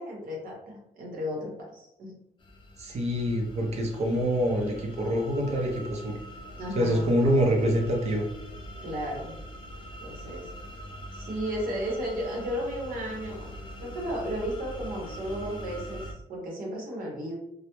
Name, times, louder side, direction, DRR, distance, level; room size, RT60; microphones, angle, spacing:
voice 1, 0.0-2.1 6.6-7.2 8.8-9.4 10.0-10.5 11.1-13.5 13.8-17.3, equal, 80° right, -1 dB, 0.8 m, -34 dB
sound 1, 2.4-16.1, equal, 35° left, 0.4 m, -43 dB
voice 2, 2.8-6.2 6.7-8.3, equal, 50° right, 0 dB, 0.5 m, -26 dB
2.1 x 2.0 x 2.9 m, 0.80 s
cardioid pair, 110°, 15 cm